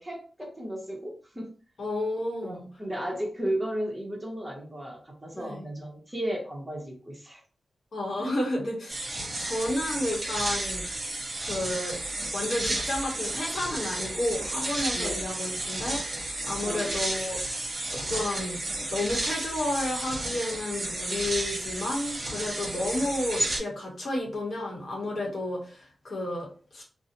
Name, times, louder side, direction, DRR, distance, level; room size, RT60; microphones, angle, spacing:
voice 1, 0.0-1.5 2.4-7.4 8.2-8.4 14.9-15.2 16.6-17.0, right 1 dB, 15° right, -1 dB, 0.8 m, -34 dB
voice 2, 1.8-2.7 5.3-5.7 7.9-9.1 9.4-10.8 11.4-12.0 12.3-17.6 17.9-18.6 18.9-26.8, left 1 dB, 60° left, -1 dB, 0.9 m, -31 dB
sound 1, 8.9-23.6, right 1 dB, 40° right, 1.0 m, -32 dB
2.5 x 2.0 x 2.7 m, 0.39 s
wide cardioid pair, 90°, 0 cm